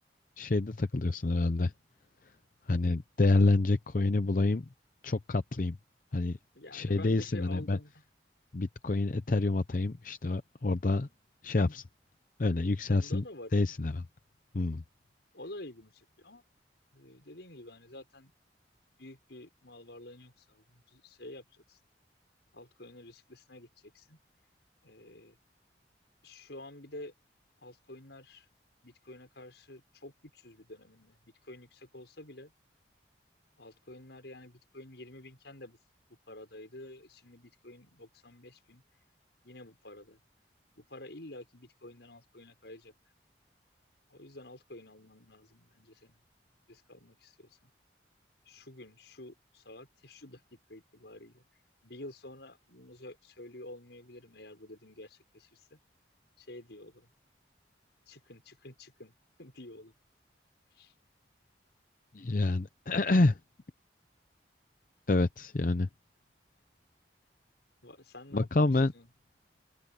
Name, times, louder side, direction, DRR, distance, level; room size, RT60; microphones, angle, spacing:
voice 1, 0.4-1.7 2.7-4.6 5.0-5.8 6.1-6.4 6.7-7.8 8.5-11.1 11.4-11.8 12.4-13.2 13.5-14.0 14.5-14.8 62.1-63.4 65.1-65.9 68.3-68.9, left 2 dB, 45° left, 0.6 m, -27 dB
voice 2, 6.5-7.9 12.9-13.6 15.3-16.4 16.9-18.3 19.0-21.8 22.5-24.2 24.8-25.4 26.2-27.1 27.6-28.5 28.8-31.2 31.4-32.5 33.6-35.8 36.3-38.8 39.4-40.2 40.8-42.9 44.1-46.2 46.7-47.7 48.5-51.4 51.8-55.8 56.4-57.1 58.1-59.1 59.4-59.9 60.8-60.9 67.8-68.7 68.9-69.1, left 1 dB, 70° left, 5.8 m, -49 dB
open air
head